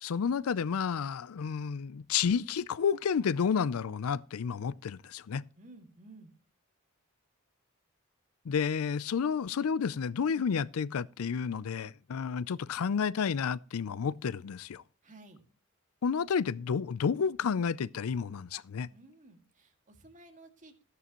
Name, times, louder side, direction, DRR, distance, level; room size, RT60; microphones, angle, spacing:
voice 1, 0.0-5.4 8.5-14.8 16.0-18.9, left 6 dB, 85° left, 0.4 m, -31 dB
voice 2, 5.6-6.3 15.0-15.4 18.9-20.8, right 2 dB, 35° right, 2.1 m, -54 dB
14.0 x 11.0 x 3.0 m
head